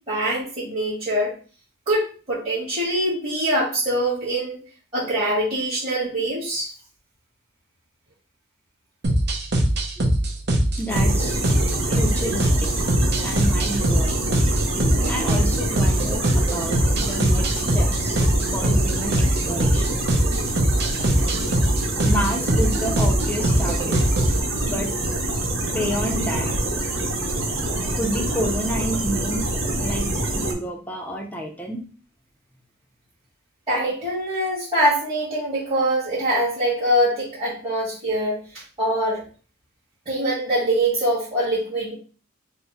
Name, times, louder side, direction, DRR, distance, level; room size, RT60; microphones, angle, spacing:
voice 1, 0.1-1.3 1.9-4.6 4.9-6.7 33.7-39.2 40.1-41.9, right 1 dB, 30° right, -12 dB, 1.8 m, -23 dB
sound 1, 9.0-24.4, right 1 dB, 55° right, 0.7 m, -21 dB
voice 2, 10.8-11.4 11.9-12.7 13.2-14.3 15.1-18.2 18.5-20.0 22.0-24.0 24.7-24.9 25.7-26.5 27.9-29.5 29.8-31.8, equal, 10° left, 2 dB, 0.5 m, -29 dB
sound 2, 10.9-30.5, right 1 dB, 80° right, 0.9 m, -26 dB
3.5 x 2.0 x 4.1 m, 0.38 s
head